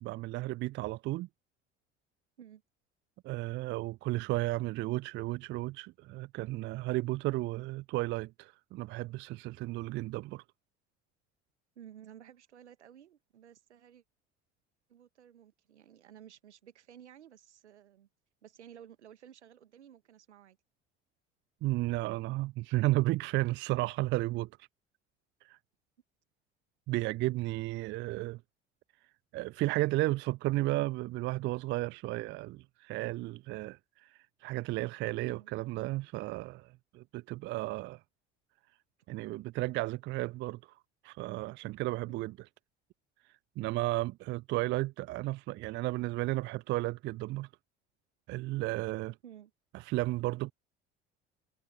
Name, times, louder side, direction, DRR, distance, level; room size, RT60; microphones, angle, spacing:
voice 1, 0.0-1.3 3.2-10.4 21.6-24.7 25.4-25.6 26.9-28.4 29.3-38.0 39.1-40.8 41.0-42.3 43.6-47.5 48.3-49.2 49.7-50.5, right 18 dB, 35° right, 0.4 m, -33 dB
voice 2, 11.8-14.0 14.9-18.1 18.4-20.6 35.3-35.5 42.1-42.3 49.2-49.5, right 9 dB, 75° right, 1.7 m, -54 dB
figure-of-eight pair, 60°, 34 cm